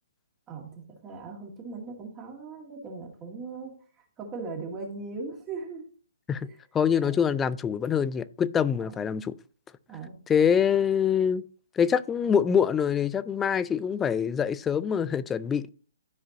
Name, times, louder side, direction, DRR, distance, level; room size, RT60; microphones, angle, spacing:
voice 1, 0.5-5.9 6.4-6.6 7.0-7.3 8.8-9.1 9.9-10.2, right 4 dB, 20° right, 2.1 m, -39 dB
voice 2, 6.7-9.4 10.3-11.4 11.8-15.7, left 7 dB, 15° left, 0.3 m, -25 dB
13.0 x 5.0 x 2.8 m
hypercardioid pair, 145°, 0 cm